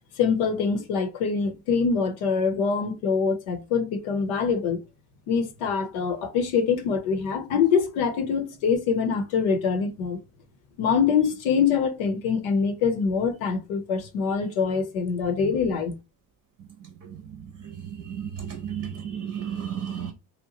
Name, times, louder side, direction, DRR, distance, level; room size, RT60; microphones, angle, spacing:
voice 1, 0.2-4.8 5.3-10.2 10.8-16.0, left 6 dB, 75° left, 0.8 m, -24 dB
voice 2, 18.1-20.1, right 8 dB, 30° right, 0.7 m, -32 dB
2.9 x 2.1 x 2.7 m
supercardioid pair, 70°, 48 cm